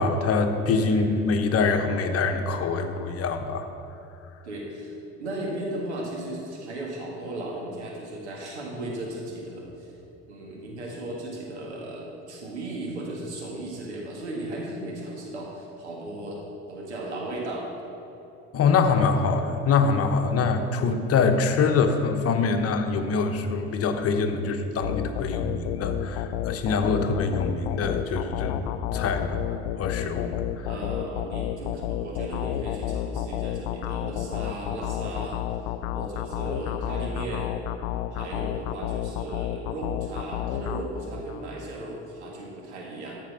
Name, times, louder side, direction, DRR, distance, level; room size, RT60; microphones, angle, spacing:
voice 1, 0.0-3.7 18.5-29.4 29.8-30.7, left 4 dB, 45° left, 6 dB, 1.0 m, -24 dB
voice 2, 0.9-1.3 4.4-4.9 5.2-9.9 10.3-17.7 20.3-20.6 30.7-35.4 35.9-37.6 38.1-43.1, right 1 dB, 90° right, -2 dB, 1.8 m, -36 dB
sound 1, 24.8-41.4, left 11 dB, 65° left, 0.5 m, -31 dB
13.5 x 4.5 x 5.6 m, 2.9 s
hypercardioid pair, 65°, 33 cm